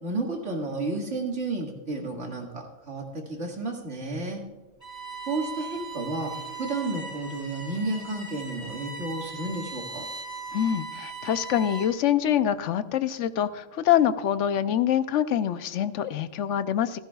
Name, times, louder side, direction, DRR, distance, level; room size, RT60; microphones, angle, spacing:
voice 1, 0.0-4.4 5.3-6.3 6.6-10.1, right 2 dB, 70° right, 0 dB, 2.3 m, -32 dB
Bowed string instrument, 4.8-12.1, right 4 dB, 15° right, 3.2 m, -39 dB
voice 2, 10.5-17.0, left 10 dB, 80° left, 12 dB, 0.9 m, -25 dB
16.0 x 14.0 x 2.3 m, 1.1 s
omnidirectional pair, 1.3 m